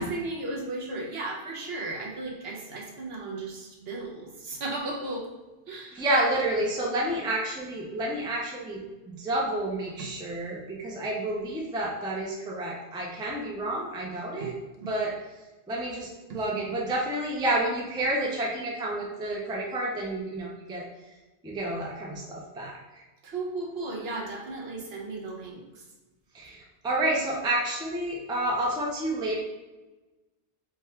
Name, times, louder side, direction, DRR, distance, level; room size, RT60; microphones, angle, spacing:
voice 1, 0.0-5.3 5.7-6.0 10.0-10.1 14.4-14.5 14.8-14.9 16.3-16.4 23.2-25.9, right 2 dB, 65° right, -1 dB, 1.0 m, -35 dB
voice 2, 5.9-14.5 14.9-15.1 15.7-20.9 21.4-23.0 26.3-29.4, right 1 dB, 5° right, -3 dB, 0.4 m, -30 dB
3.5 x 2.3 x 4.2 m, 1.1 s
omnidirectional pair, 1.2 m